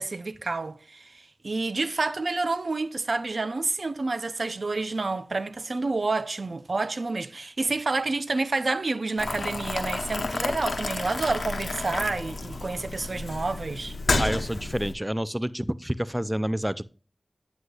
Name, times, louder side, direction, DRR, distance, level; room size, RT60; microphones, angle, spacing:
voice 1, 0.0-14.0, right 3 dB, 75° right, 0.5 m, -29 dB
Boiling, 9.2-14.9, left 3 dB, 90° left, 0.9 m, -31 dB
voice 2, 14.2-16.8, equal, 10° right, 0.4 m, -28 dB
9.4 x 8.1 x 2.4 m
wide cardioid pair, 45°, 0 cm